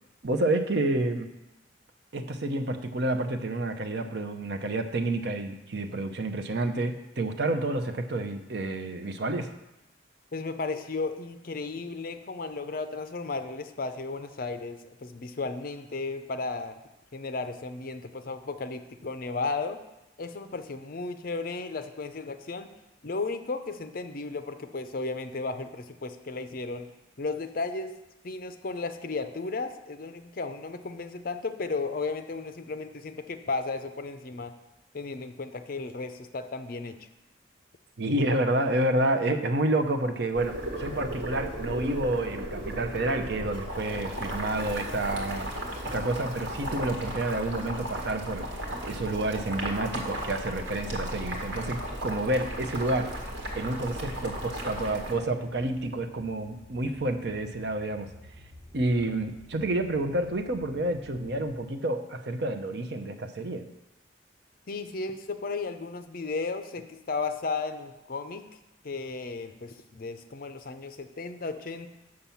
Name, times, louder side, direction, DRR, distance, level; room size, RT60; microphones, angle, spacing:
voice 1, 0.2-1.3 2.1-9.5 38.0-45.5 45.8-48.5 48.8-53.2 53.6-58.1 58.7-63.7, right 2 dB, 60° right, 6 dB, 0.7 m, -29 dB
voice 2, 10.3-16.8 17.1-19.8 20.2-22.7 23.0-26.9 27.2-27.9 28.2-34.5 34.9-37.0 64.7-68.4 68.8-71.9, left 3 dB, 50° left, 9 dB, 0.6 m, -34 dB
Boiling, 40.3-55.1, right 1 dB, 80° right, 1.8 m, -35 dB
sound 1, 51.1-61.6, left 1 dB, 5° left, 1.6 m, -52 dB
6.5 x 5.8 x 7.0 m, 0.96 s
head